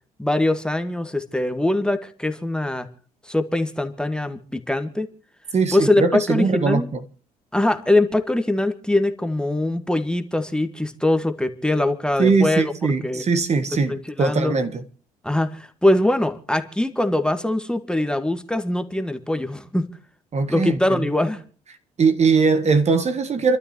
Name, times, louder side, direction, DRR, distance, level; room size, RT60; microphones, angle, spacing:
voice 1, 0.2-2.9 3.2-5.1 5.7-6.9 7.5-12.7 13.0-13.3 13.7-14.6 15.2-19.9 20.5-21.4, left 1 dB, 5° left, 1.7 m, -22 dB
voice 2, 5.5-7.0 12.2-14.7 20.3-21.0 22.0-23.6, right 4 dB, 35° right, 1.5 m, -20 dB
29.0 x 12.5 x 3.1 m
figure-of-eight pair, 50°, 18 cm